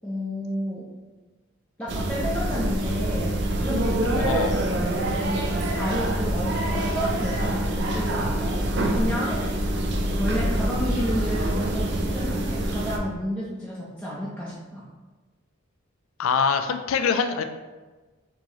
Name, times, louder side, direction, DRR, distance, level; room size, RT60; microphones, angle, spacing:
voice 1, 0.0-0.9 1.8-3.3 3.6-4.5 4.8-8.6 8.9-9.4 10.2-14.8, equal, 5° left, -8 dB, 0.6 m, -31 dB
sound 1, 1.9-13.0, right 1 dB, 55° right, 0.5 m, -25 dB
voice 2, 4.2-4.5 16.2-17.4, left 6 dB, 90° left, 8 dB, 0.4 m, -24 dB
4.6 x 2.9 x 3.0 m, 1.3 s
head